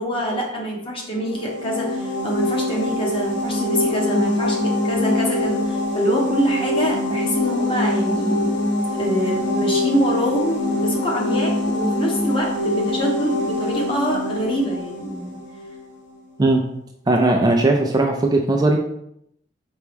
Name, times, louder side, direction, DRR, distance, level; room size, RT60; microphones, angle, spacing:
voice 1, 0.0-8.5 9.0-15.3, equal, 30° left, -2 dB, 1.0 m, -25 dB
sound 1, 1.2-15.9, left 1 dB, 85° left, 0.8 m, -24 dB
voice 2, 17.1-18.8, right 2 dB, 20° right, 2 dB, 0.4 m, -18 dB
4.5 x 3.0 x 3.4 m, 0.76 s
head